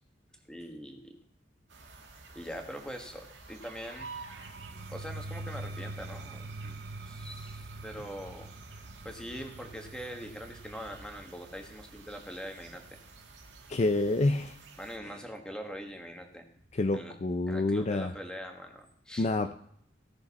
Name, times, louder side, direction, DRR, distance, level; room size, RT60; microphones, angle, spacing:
voice 1, 0.5-1.2 2.3-4.1 4.9-12.8 14.8-16.5 16.9-17.1 17.5-19.3, equal, 5° left, 3 dB, 1.4 m, -43 dB
sound 1, 1.7-15.0, right 4 dB, 80° right, 2.0 m, -51 dB
sound 2, 4.0-13.8, right 2 dB, 55° right, 0.6 m, -45 dB
voice 2, 13.7-14.6 15.1-15.2 16.7-18.1 19.2-19.5, left 2 dB, 35° left, 7 dB, 0.4 m, -28 dB
17.0 x 6.5 x 4.1 m, 0.71 s
head